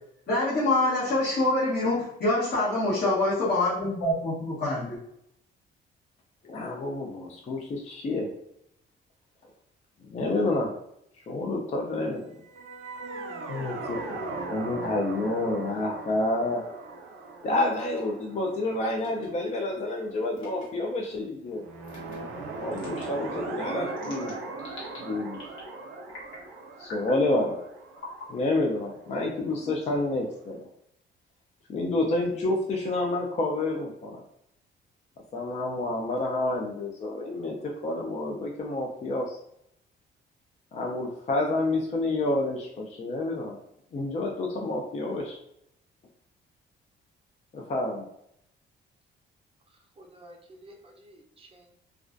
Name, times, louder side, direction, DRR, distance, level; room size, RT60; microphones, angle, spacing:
voice 1, 0.3-5.0, left 2 dB, 55° left, -10 dB, 1.0 m, -25 dB
voice 2, 6.4-8.3 10.1-10.7 11.3-12.4 13.5-14.0 14.3-16.6 17.4-21.7 22.6-24.3 25.0-25.4 26.8-27.6 28.3-30.6 31.7-34.2 35.3-39.4 40.7-43.6 43.9-45.4 47.5-48.1, left 2 dB, 35° left, 0 dB, 0.4 m, -29 dB
sound 1, 12.4-19.7 21.6-29.3, right 3 dB, 80° right, 0.5 m, -39 dB
sound 2, 17.7-18.0 19.0-19.3 20.3-20.7 21.8-22.2 22.7-23.1 24.0-25.0 25.3-25.7 26.1-26.5 26.8-27.2 27.9-28.3 29.1-30.0, left 1 dB, 85° left, 1.0 m, -43 dB
voice 3, 50.0-51.7, right 1 dB, 30° right, 1 dB, 0.5 m, -51 dB
2.3 x 2.2 x 2.4 m, 0.78 s
cardioid pair, 90°, 20 cm